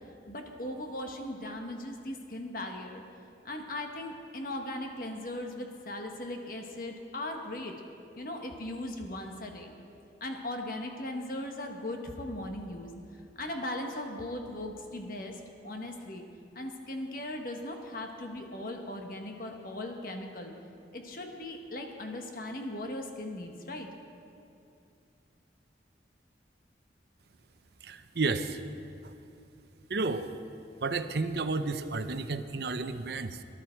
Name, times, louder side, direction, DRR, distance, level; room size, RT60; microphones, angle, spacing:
voice 1, 0.3-3.0 3.4-7.7 8.2-9.7 10.2-12.9 13.4-15.3 15.6-16.2 16.5-20.5 20.9-23.9, left 1 dB, 50° left, 3 dB, 1.4 m, -38 dB
voice 2, 27.8-28.6 29.0-29.1 29.9-30.3 30.8-33.4, right 3 dB, 65° right, 9 dB, 0.7 m, -32 dB
18.0 x 11.5 x 4.5 m, 2.6 s
head